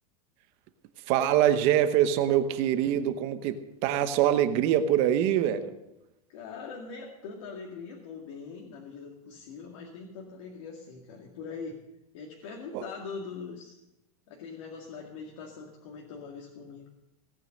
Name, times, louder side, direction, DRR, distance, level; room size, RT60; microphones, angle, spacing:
voice 1, 1.1-5.7 12.7-12.8, right 11 dB, 30° right, 10 dB, 1.0 m, -24 dB
voice 2, 6.3-11.8 12.1-13.8 14.3-16.9, left 5 dB, 55° left, -1 dB, 2.2 m, -42 dB
17.5 x 9.4 x 6.5 m, 0.90 s
supercardioid pair, 175°, 19 cm